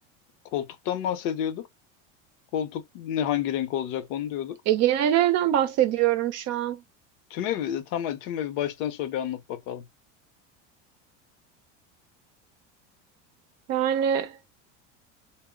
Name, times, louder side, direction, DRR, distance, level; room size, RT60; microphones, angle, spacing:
voice 1, 0.5-1.7 2.5-4.6 7.3-9.8, left 10 dB, 60° left, 0.8 m, -29 dB
voice 2, 4.7-6.8 13.7-14.4, right 11 dB, 45° right, 0.6 m, -23 dB
2.1 x 2.0 x 3.7 m
supercardioid pair, 115°, 35 cm